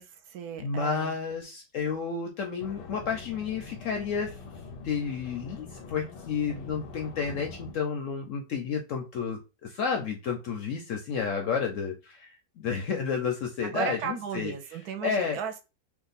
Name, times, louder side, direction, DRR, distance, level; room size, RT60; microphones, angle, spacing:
voice 1, 0.0-1.2 13.6-15.7, right 7 dB, 75° right, 1.0 m, -35 dB
voice 2, 0.6-4.4 4.8-12.3 12.6-14.5 15.0-15.4, left 6 dB, 70° left, 0.7 m, -31 dB
sound 1, 2.6-7.7, left 4 dB, 90° left, 1.3 m, -44 dB
2.7 x 2.4 x 3.9 m
omnidirectional pair, 1.8 m